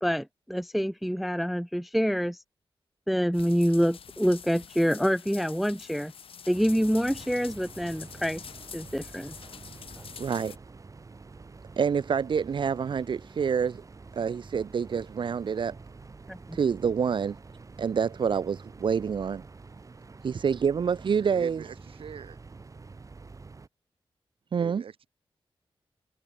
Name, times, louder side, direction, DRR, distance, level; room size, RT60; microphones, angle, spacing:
voice 1, 0.0-2.4 3.1-6.1 6.5-8.4 8.7-9.4 16.3-16.6, equal, ahead, 0.4 m, -26 dB
sound 1, 3.3-10.6, left 7 dB, 80° left, 2.5 m, -46 dB
sound 2, 6.5-23.7, right 4 dB, 35° right, 1.6 m, -48 dB
voice 2, 10.2-10.5 11.8-13.8 14.1-15.8 16.5-17.3 17.8-19.4 20.2-21.6 24.5-24.8, right 6 dB, 60° right, 0.8 m, -27 dB
voice 3, 21.2-22.4 24.5-25.1, right 7 dB, 80° right, 1.4 m, -44 dB
wide cardioid pair, 105°, 9 cm